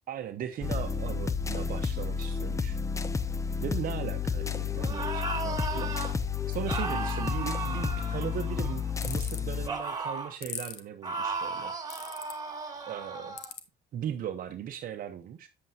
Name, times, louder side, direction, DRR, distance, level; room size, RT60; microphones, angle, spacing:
voice 1, 0.1-2.8 3.6-5.9 6.5-11.7 12.9-13.4 13.9-15.5, right 9 dB, 55° right, 0.8 m, -38 dB
sound 1, 0.6-9.7, left 6 dB, 20° left, 0.6 m, -31 dB
sound 2, 4.8-6.1 6.7-8.9 9.7-10.4 11.0-13.5, right 4 dB, 20° right, 2.1 m, -35 dB
sound 3, 9.0-9.4 10.4-10.8 11.9-12.3 13.4-13.6, left 9 dB, 75° left, 1.1 m, -38 dB
8.6 x 7.6 x 2.7 m
cardioid pair, 110°, 17 cm